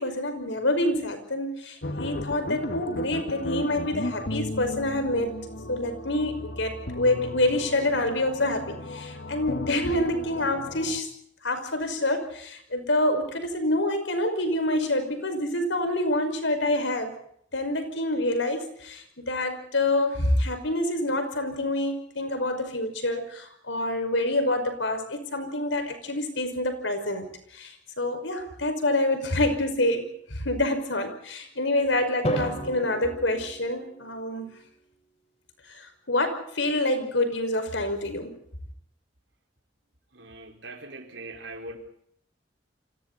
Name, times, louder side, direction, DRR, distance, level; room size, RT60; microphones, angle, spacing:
voice 1, 0.0-5.3 5.7-11.1 11.4-17.1 17.5-27.3 27.5-34.5 35.7-38.4, left 1 dB, 80° left, 8 dB, 5.5 m, -27 dB
sound 1, 1.8-11.0, left 1 dB, 65° left, 1.8 m, -35 dB
Drum, 32.2-34.3, left 1 dB, 35° left, 5.1 m, -32 dB
voice 2, 40.1-41.8, right 2 dB, 80° right, 4 dB, 4.6 m, -41 dB
30.0 x 25.5 x 4.2 m, 0.67 s
head